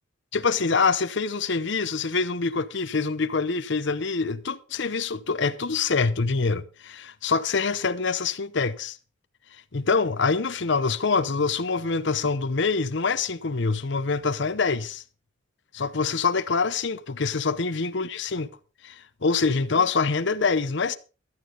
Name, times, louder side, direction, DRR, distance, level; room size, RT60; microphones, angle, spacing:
voice 1, 0.3-9.0 9.7-15.0 15.7-18.5 18.8-21.0, left 4 dB, 60° left, 0.8 m, -25 dB
16.0 x 12.0 x 3.9 m
head